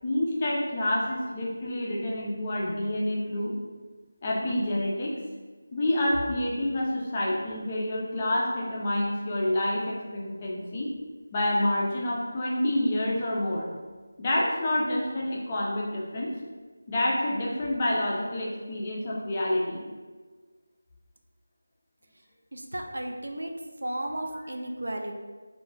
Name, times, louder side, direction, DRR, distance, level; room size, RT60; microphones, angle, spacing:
voice 1, 0.0-3.5 4.2-5.2 5.7-10.9 11.3-13.7 14.2-16.3 16.9-19.8, left 1 dB, 20° left, -4 dB, 0.3 m, -28 dB
voice 2, 22.5-23.5 23.8-25.2, right 1 dB, 80° right, 3 dB, 0.3 m, -34 dB
2.2 x 2.1 x 3.0 m, 1.4 s
figure-of-eight pair, 175°, 0 cm